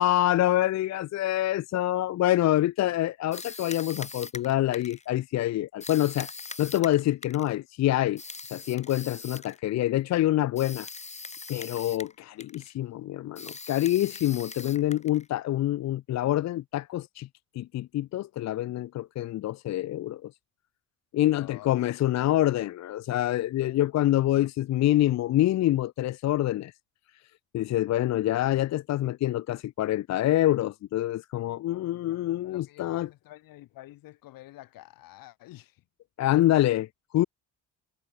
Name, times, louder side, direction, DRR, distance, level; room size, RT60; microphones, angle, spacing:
voice 1, 0.0-6.3 6.6-8.2 8.5-10.9 11.5-17.3 17.6-20.3 21.1-26.7 27.5-33.1 36.2-36.9 37.1-37.2, left 14 dB, 50° left, 0.6 m, -26 dB
sound 1, 3.3-5.1 5.8-7.5 8.2-9.6 10.6-12.2 12.4-12.7 13.4-15.3, left 4 dB, 20° left, 3.9 m, -41 dB
voice 2, 21.3-21.8 23.7-24.5 31.7-35.8, left 16 dB, 80° left, 2.5 m, -49 dB
cardioid pair, 120°, 34 cm